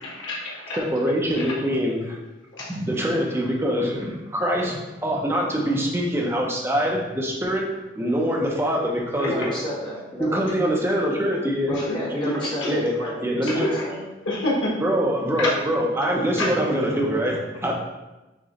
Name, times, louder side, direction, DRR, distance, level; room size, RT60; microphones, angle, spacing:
voice 1, 0.0-0.8 2.6-2.7 12.6-12.7 13.6-13.7 14.2-14.7 15.4-15.5 16.4-16.5, left 2 dB, 90° left, -5 dB, 1.1 m, -26 dB
voice 2, 0.8-2.2 2.7-7.7 8.0-9.5 10.2-11.7 12.2-12.3 12.7-12.9 13.2-13.7 14.8-17.7, equal, 15° right, -2 dB, 0.6 m, -24 dB
voice 3, 9.2-10.4 11.7-14.0, left 1 dB, 25° left, -7 dB, 1.2 m, -31 dB
5.0 x 3.0 x 2.9 m, 1.0 s
head